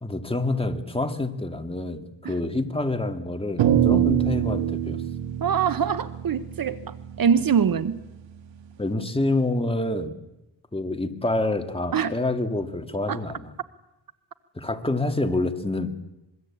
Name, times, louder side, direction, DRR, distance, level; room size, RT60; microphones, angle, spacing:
voice 1, 0.0-5.0 8.8-10.1 10.7-13.5 14.5-15.9, left 2 dB, 10° left, 2.2 m, -27 dB
sound 1, 3.6-8.1, right 11 dB, 70° right, 1.8 m, -25 dB
voice 2, 5.4-8.0 11.9-12.1 13.1-13.2, right 7 dB, 50° right, 1.1 m, -24 dB
25.5 x 22.5 x 8.7 m
cardioid pair, 105°, 46 cm